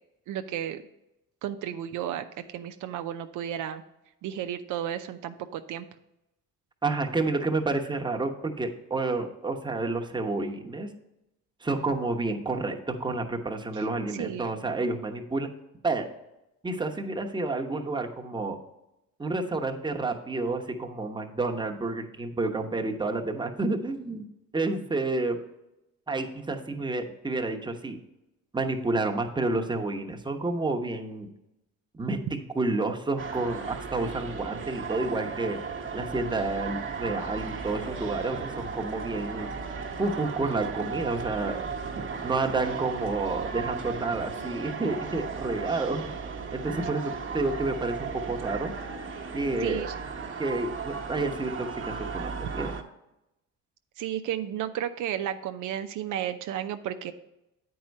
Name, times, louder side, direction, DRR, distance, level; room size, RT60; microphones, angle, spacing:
voice 1, 0.3-0.8 1.4-2.2 2.5-3.8 4.2-5.9 13.7-13.9 14.1-14.5 49.6-49.9 54.0-57.1, right 10 dB, 80° right, 8 dB, 0.6 m, -33 dB
voice 2, 6.8-10.9 11.6-15.5 15.8-16.1 16.6-18.6 19.2-24.2 24.5-25.4 26.1-28.0 28.5-31.3 31.9-35.6 35.9-39.5 40.0-41.7 42.2-46.1 46.5-48.7 49.3-49.8 50.4-52.7, right 3 dB, 15° right, 2 dB, 1.0 m, -30 dB
sound 1, 33.2-52.8, right 5 dB, 40° right, 1.1 m, -36 dB
8.7 x 4.7 x 5.3 m, 0.90 s
cardioid pair, 90°, 30 cm